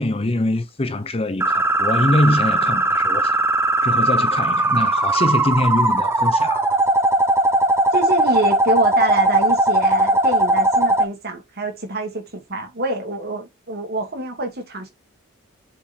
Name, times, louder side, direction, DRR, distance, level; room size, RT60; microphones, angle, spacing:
voice 1, 0.0-3.5 3.8-6.8, left 1 dB, 25° left, 0.7 m, -23 dB
sound 1, 1.4-11.1, right 2 dB, 10° right, 0.7 m, -18 dB
voice 2, 7.9-14.9, right 2 dB, 45° right, 2.6 m, -26 dB
7.1 x 4.4 x 3.8 m
head